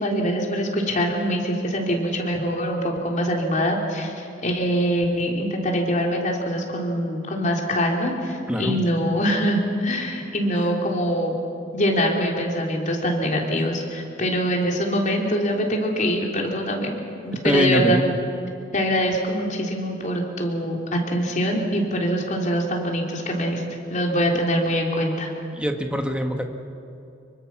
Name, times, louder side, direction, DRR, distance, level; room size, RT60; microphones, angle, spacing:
voice 1, 0.0-11.3 11.7-17.0 17.2-18.0 18.7-23.6 23.9-25.3, equal, 40° left, 0 dB, 3.4 m, -24 dB
voice 2, 17.4-18.0 25.5-26.5, equal, 5° right, 4 dB, 1.7 m, -22 dB
25.5 x 23.5 x 6.1 m, 2.6 s
head